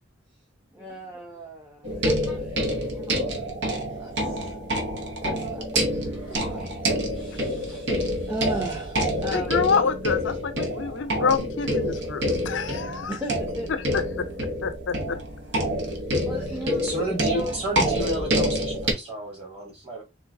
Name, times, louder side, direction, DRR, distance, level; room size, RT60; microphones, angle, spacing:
voice 1, 0.7-3.5 3.9-4.6 5.2-9.7 12.5-12.6 13.1-14.0 15.8-17.6, equal, 10° right, 0.7 m, -37 dB
sound 1, 1.8-18.9, equal, 60° right, 0.9 m, -27 dB
voice 2, 9.3-13.1 13.9-14.0 14.4-15.2, left 5 dB, 75° left, 0.5 m, -27 dB
voice 3, 16.8-20.0, right 1 dB, 30° right, 2.1 m, -31 dB
3.7 x 3.2 x 2.6 m
head